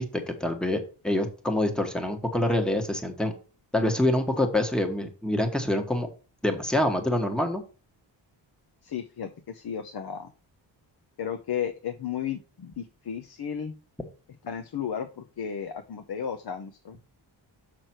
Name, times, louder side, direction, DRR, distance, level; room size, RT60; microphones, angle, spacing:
voice 1, 0.0-3.3 3.7-6.1 6.4-7.6, left 1 dB, ahead, 5 dB, 1.3 m, -26 dB
voice 2, 8.8-10.3 11.2-13.7 14.4-17.0, left 8 dB, 55° left, 7 dB, 0.9 m, -34 dB
6.6 x 6.1 x 4.4 m, 0.35 s
wide cardioid pair, 110°, 47 cm